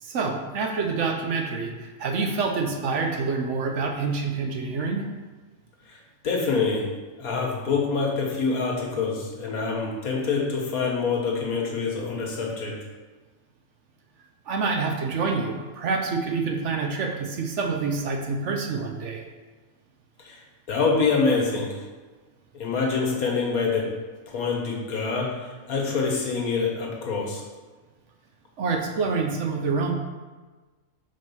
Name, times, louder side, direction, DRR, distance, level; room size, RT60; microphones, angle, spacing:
voice 1, 0.0-5.1 14.5-19.2 28.6-29.9, right 4 dB, 60° right, 2 dB, 1.0 m, -27 dB
voice 2, 6.2-6.9 7.2-12.7 20.2-20.4 20.7-21.8 22.5-23.9 24.3-27.4, left 4 dB, 90° left, -1 dB, 1.6 m, -26 dB
5.2 x 3.8 x 5.4 m, 1.3 s
omnidirectional pair, 1.5 m